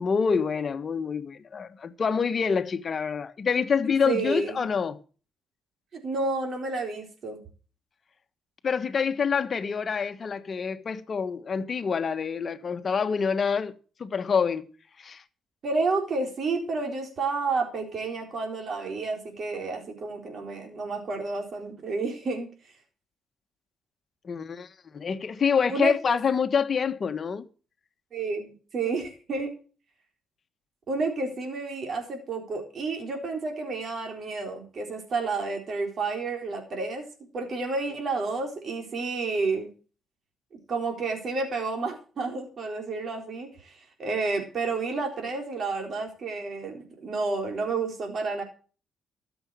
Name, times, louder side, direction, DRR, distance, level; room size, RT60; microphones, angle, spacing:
voice 1, 0.0-5.0 8.6-13.7 14.0-14.7 15.0-15.2 24.2-24.7 24.9-27.5, left 6 dB, 45° left, 1.4 m, -26 dB
voice 2, 4.0-4.6 5.9-7.4 15.6-22.5 25.7-26.2 28.1-29.5 30.9-37.0 37.3-39.7 40.7-48.4, right 3 dB, 50° right, 4.1 m, -30 dB
13.5 x 7.2 x 7.6 m
cardioid pair, 90°, 0 cm